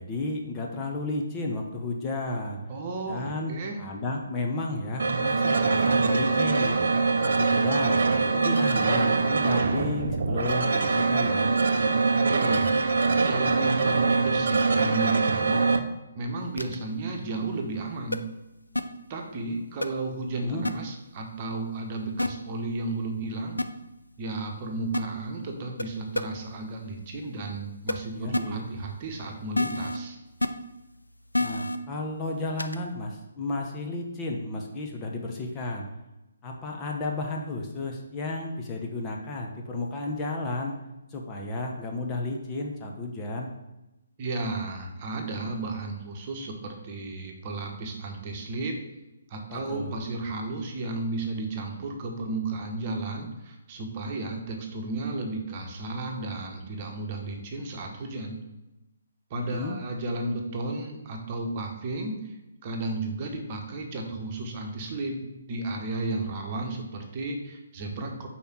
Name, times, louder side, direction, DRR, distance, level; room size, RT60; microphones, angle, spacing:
voice 1, 0.0-2.6 3.1-3.5 3.8-6.8 7.2-8.0 8.3-11.5 20.4-20.6 28.1-28.6 31.4-35.9 36.4-40.8 41.1-43.5 49.5-49.9 59.3-59.7, left 2 dB, 20° left, 0 dB, 0.9 m, -32 dB
voice 2, 2.7-3.8 12.1-12.9 13.2-15.6 16.1-18.2 19.1-23.6 24.2-30.2 44.2-48.8 49.3-58.4 59.3-62.4 62.6-68.3, right 2 dB, 35° right, 2 dB, 1.2 m, -33 dB
sound 1, 5.0-15.8, right 4 dB, 60° right, 0.6 m, -23 dB
sound 2, 16.6-16.8 18.1-18.2 18.7-18.8 19.8-19.9 20.6-20.7 22.2-22.3 23.6-23.7 24.9-25.0 25.8-25.9 26.1-26.2 27.9-28.0 28.3-28.4 29.5-30.0 30.4-30.5 31.3-31.8 32.6-32.8, left 2 dB, 85° left, 0.5 m, -26 dB
5.4 x 4.3 x 6.1 m, 0.98 s
figure-of-eight pair, 135°, 0 cm